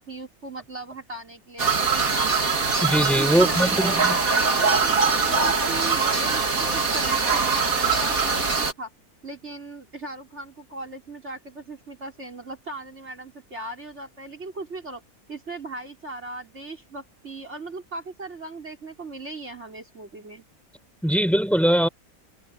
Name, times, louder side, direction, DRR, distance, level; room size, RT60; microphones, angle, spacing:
voice 1, 0.0-2.4 3.2-8.9 9.2-15.0 15.3-20.4, right 2 dB, 45° right, 4.5 m, -38 dB
sound 1, 1.6-8.7, right 4 dB, 65° right, 2.9 m, -22 dB
voice 2, 2.8-4.2 21.0-21.9, equal, ahead, 6.9 m, -21 dB
omnidirectional pair, 1.6 m